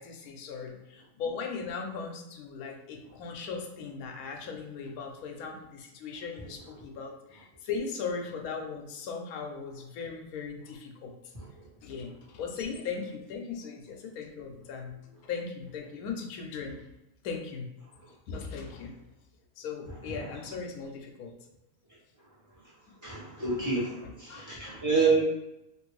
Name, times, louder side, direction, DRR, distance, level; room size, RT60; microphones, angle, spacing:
voice 1, 0.0-11.2 11.8-16.8 17.2-17.7 18.3-18.9 19.6-21.3 24.0-24.8, left 5 dB, 85° left, 2 dB, 1.1 m, -38 dB
voice 2, 23.0-25.2, right 4 dB, 15° right, -8 dB, 1.0 m, -28 dB
2.9 x 2.5 x 3.1 m, 0.89 s
omnidirectional pair, 1.5 m